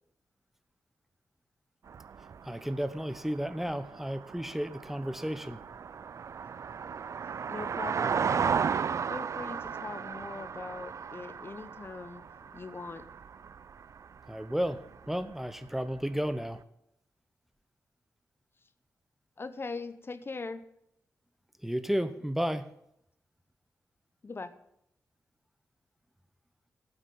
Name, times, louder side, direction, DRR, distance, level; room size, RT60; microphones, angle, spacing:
sound 1, 1.9-14.8 15.1-15.2 15.5-15.6, right 6 dB, 55° right, 0.4 m, -35 dB
voice 1, 2.4-5.6 14.3-16.6 21.6-22.7, equal, 5° right, 13 dB, 0.8 m, -33 dB
voice 2, 7.2-8.7 9.1-13.1 19.4-20.6 24.2-24.5, left 3 dB, 40° left, 13 dB, 0.8 m, -41 dB
9.2 x 8.1 x 9.2 m, 0.77 s
cardioid pair, 70°, 6 cm